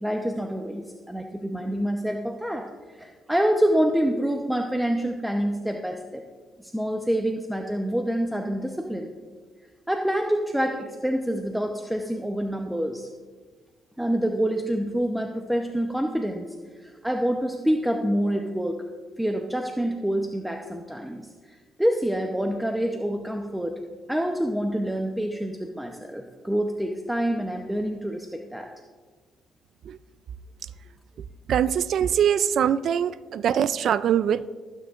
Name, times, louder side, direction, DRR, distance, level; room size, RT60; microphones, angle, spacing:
voice 1, 0.0-6.2 6.6-9.1 9.9-13.1 14.0-16.5 16.8-18.8 19.2-23.8 24.1-28.7, equal, 5° right, 2 dB, 0.8 m, -27 dB
voice 2, 31.5-34.5, right 9 dB, 65° right, 15 dB, 0.4 m, -23 dB
21.0 x 9.5 x 2.5 m, 1.5 s
cardioid pair, 90°, 0 cm